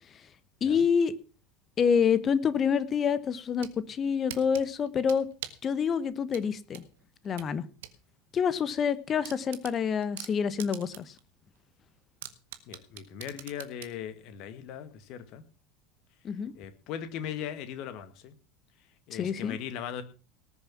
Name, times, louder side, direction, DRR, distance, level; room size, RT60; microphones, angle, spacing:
voice 1, 0.6-1.2 1.8-5.3 5.6-6.8 7.2-7.7 8.3-11.0 16.2-16.5 19.1-19.6, left 7 dB, 35° left, 16 dB, 1.2 m, -27 dB
sound 1, 3.3-3.8 4.3-5.7 6.3-8.0 8.3-8.4 8.8-8.9 9.2-11.2 11.6-11.7 12.2-14.0, right 13 dB, 65° right, 1.4 m, -43 dB
voice 2, 12.7-15.4 16.5-18.3 19.1-20.0, left 9 dB, 55° left, 11 dB, 1.9 m, -39 dB
18.5 x 7.1 x 5.9 m, 0.35 s
figure-of-eight pair, 75°, 0 cm